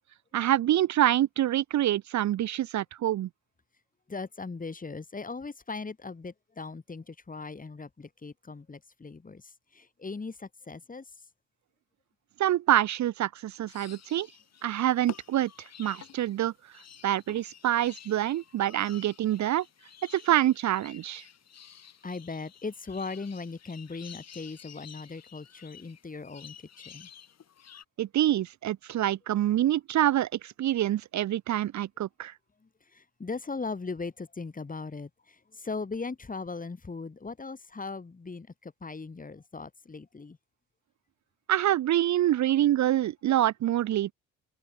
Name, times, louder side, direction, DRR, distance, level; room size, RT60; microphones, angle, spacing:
voice 1, 0.3-3.3 12.4-14.3 14.6-16.5 17.0-19.6 20.1-21.2 28.0-32.3 41.5-44.1, right 12 dB, 55° right, 1.0 m, -26 dB
voice 2, 4.1-11.1 22.0-27.1 32.6-40.4, left 4 dB, 25° left, 3.9 m, -39 dB
sound 1, 13.7-27.8, left 8 dB, 50° left, 4.1 m, -51 dB
open air
supercardioid pair, 70°, 33 cm